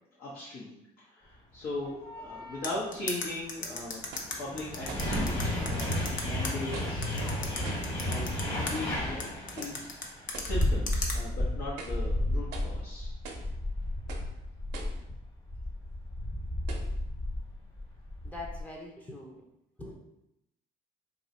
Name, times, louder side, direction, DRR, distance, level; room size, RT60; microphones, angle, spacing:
voice 1, 0.2-4.0 4.4-6.0 6.2-7.5 8.0-9.7 10.0-13.1, left 2 dB, 75° left, -8 dB, 0.9 m, -39 dB
sound 1, 1.8-2.7 3.6-18.6, left 1 dB, 35° left, 1.3 m, -33 dB
sound 2, 2.6-6.5 7.0-8.7 9.2-11.2, left 4 dB, 50° left, 0.6 m, -35 dB
sound 3, 4.1-4.4 4.9-5.2 5.8-6.1 6.7-7.1 7.6-8.0 8.7-9.0 9.6-9.8 10.3-10.6 11.1-11.2 11.7-12.1 12.5-12.8 13.2-13.5 14.1-14.4 14.7-15.1 15.7-15.8 16.7-16.9, right 4 dB, 85° right, 0.5 m, -44 dB
voice 2, 18.2-19.4 19.8-20.0, left 2 dB, 10° left, -2 dB, 0.5 m, -43 dB
2.6 x 2.3 x 4.1 m, 0.84 s
cardioid pair, 110°, 17 cm